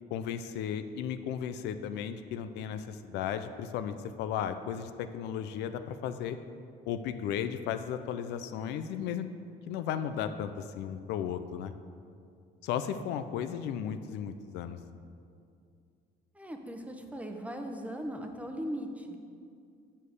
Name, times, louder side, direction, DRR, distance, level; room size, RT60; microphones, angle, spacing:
voice 1, 0.1-6.4 6.9-9.3 9.7-11.7 12.6-14.8, left 8 dB, 85° left, 10 dB, 0.5 m, -35 dB
voice 2, 16.3-19.2, equal, 10° right, 4 dB, 0.9 m, -38 dB
7.3 x 6.5 x 6.6 m, 2.4 s
cardioid pair, 110°, 17 cm